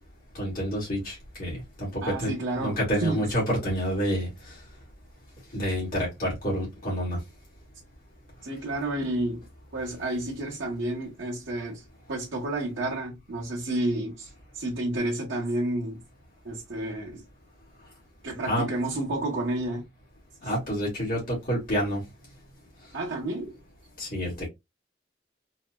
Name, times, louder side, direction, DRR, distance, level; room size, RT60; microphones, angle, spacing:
voice 1, 0.3-4.6 5.5-7.2 18.4-18.7 20.4-22.0 24.0-24.5, equal, 45° left, 1.6 m, -28 dB
voice 2, 2.0-3.3 8.4-9.5 9.7-11.8 12.1-14.3 14.5-16.0 16.4-17.2 18.2-19.9 22.9-23.6, right 1 dB, 85° right, 1.2 m, -30 dB
4.2 x 2.2 x 2.2 m
head